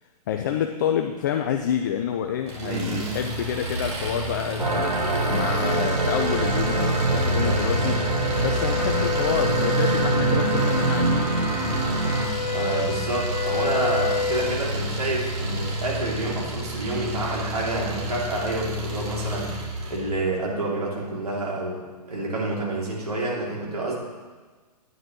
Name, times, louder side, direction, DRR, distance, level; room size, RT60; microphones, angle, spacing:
voice 1, 0.3-11.4, left 9 dB, 30° left, 5 dB, 0.4 m, -28 dB
Engine, 2.5-20.0, equal, 40° right, 2.1 m, -31 dB
voice 2, 2.6-3.1 10.3-10.7 12.5-19.5 19.9-23.9, right 2 dB, 70° right, -4 dB, 2.9 m, -28 dB
sound 1, 4.6-12.3, right 2 dB, 85° right, 1.2 m, -24 dB
sound 2, 4.7-14.6, left 3 dB, 80° left, 0.8 m, -31 dB
9.2 x 9.2 x 3.1 m, 1.4 s
figure-of-eight pair, 120°, 21 cm